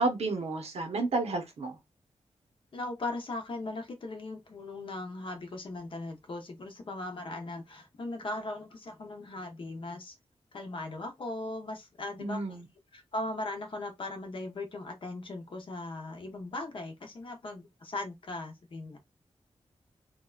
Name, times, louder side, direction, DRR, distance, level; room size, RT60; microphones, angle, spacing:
voice 1, 0.0-1.8 12.2-12.7, right 3 dB, 70° right, 0.8 m, -31 dB
voice 2, 2.7-10.2 10.5-12.6 12.9-19.0, left 2 dB, 50° left, 0.7 m, -38 dB
2.9 x 2.2 x 2.3 m
wide cardioid pair, 135°, 11 cm